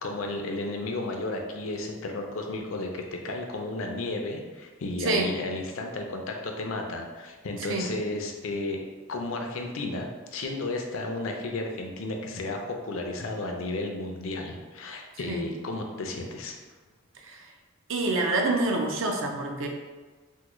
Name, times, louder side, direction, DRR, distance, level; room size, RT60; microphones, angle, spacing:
voice 1, 0.0-8.8 9.1-16.6, left 2 dB, 75° left, 2 dB, 0.5 m, -33 dB
voice 2, 5.0-5.3 7.7-7.9 15.3-15.5 17.2-17.4 17.9-19.7, right 2 dB, 65° right, 2 dB, 0.5 m, -27 dB
3.5 x 2.1 x 3.0 m, 1.3 s
head